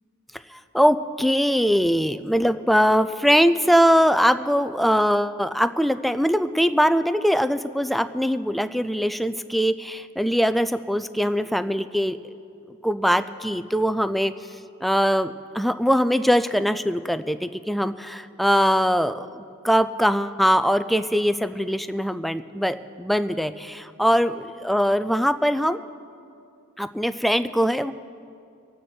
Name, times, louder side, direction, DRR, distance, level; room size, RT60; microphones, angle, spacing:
voice 1, 0.5-12.2 12.8-14.3 14.8-25.8 26.8-27.9, equal, ahead, 11 dB, 0.3 m, -22 dB
25.0 x 9.2 x 4.4 m, 2.5 s
head